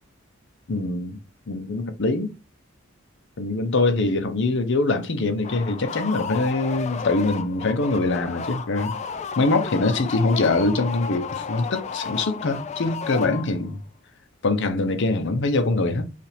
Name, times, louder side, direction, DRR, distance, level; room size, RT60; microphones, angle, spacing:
voice 1, 0.7-1.2 1.5-2.3 3.4-9.0 9.4-13.8 14.4-16.1, left 2 dB, 60° left, 0.7 m, -23 dB
sound 1, 5.4-13.8, left 6 dB, 35° left, 0.4 m, -33 dB
5.4 x 2.5 x 3.4 m
head